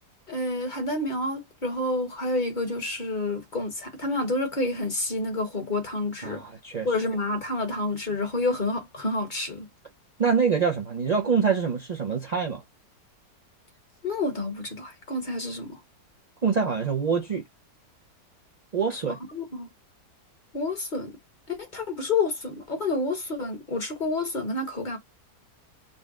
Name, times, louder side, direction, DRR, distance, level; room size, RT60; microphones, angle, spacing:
voice 1, 0.3-6.4 6.8-9.7 14.0-15.8 19.1-19.7 20.5-21.2 21.5-25.0, left 2 dB, 35° left, 1.1 m, -29 dB
voice 2, 6.2-6.9 10.2-12.6 16.4-17.4 18.7-19.2, right 6 dB, 75° right, 0.3 m, -25 dB
4.0 x 2.1 x 3.6 m
omnidirectional pair, 1.8 m